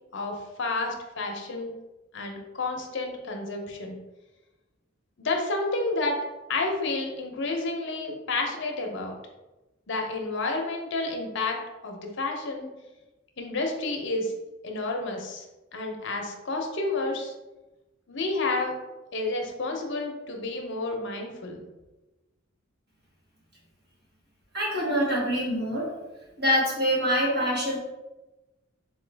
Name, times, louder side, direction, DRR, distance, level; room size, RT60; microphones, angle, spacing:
voice 1, 0.1-1.7 2.1-4.0 5.2-6.2 6.5-9.1 9.9-11.6 11.8-12.7 13.4-14.3 14.6-15.4 15.7-17.3 18.1-18.7 19.1-21.6, left 3 dB, 65° left, 2 dB, 0.7 m, -30 dB
voice 2, 24.5-25.9 26.4-27.8, equal, 55° right, -5 dB, 1.4 m, -25 dB
3.8 x 3.0 x 3.3 m, 1.1 s
head